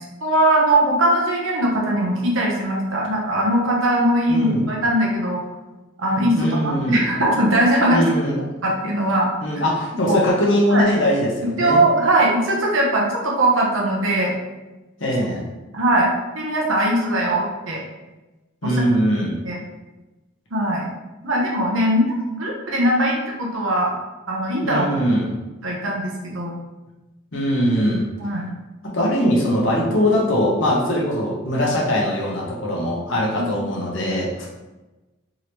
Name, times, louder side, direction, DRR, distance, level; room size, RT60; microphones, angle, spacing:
voice 1, 0.2-5.4 6.0-8.0 8.6-9.3 10.0-10.2 10.7-10.8 11.6-14.3 15.7-17.8 18.6-18.8 19.4-19.6 20.5-20.9 21.2-23.9 24.3-25.0 25.6-26.6 28.2-28.5 33.4-33.5, right 1 dB, 80° right, -2 dB, 0.9 m, -20 dB
voice 2, 4.3-4.6 6.4-7.0 7.9-8.5 9.4-11.8 15.0-15.4 18.6-19.4 24.6-25.3 27.3-28.1 28.9-34.5, equal, 65° left, -3 dB, 1.0 m, -21 dB
3.8 x 3.1 x 2.9 m, 1.1 s
head